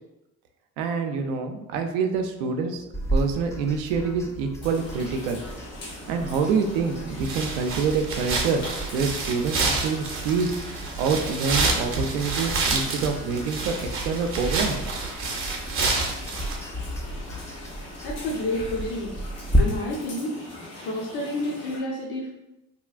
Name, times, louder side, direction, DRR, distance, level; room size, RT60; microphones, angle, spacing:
voice 1, 0.8-2.8 3.1-5.4 6.1-8.6 8.9-10.5 11.0-14.8, right 5 dB, 75° right, 5 dB, 0.5 m, -26 dB
sound 1, 2.9-19.6, right 1 dB, 10° left, 0.3 m, -34 dB
sound 2, 4.6-21.8, left 1 dB, 85° left, 1.0 m, -42 dB
sound 3, 7.2-16.6, right 3 dB, 30° right, 0.6 m, -28 dB
voice 2, 18.0-19.1 19.6-20.3 20.8-22.3, left 1 dB, 65° left, -3 dB, 0.7 m, -29 dB
3.0 x 2.3 x 2.3 m, 0.95 s
hypercardioid pair, 55°, 41 cm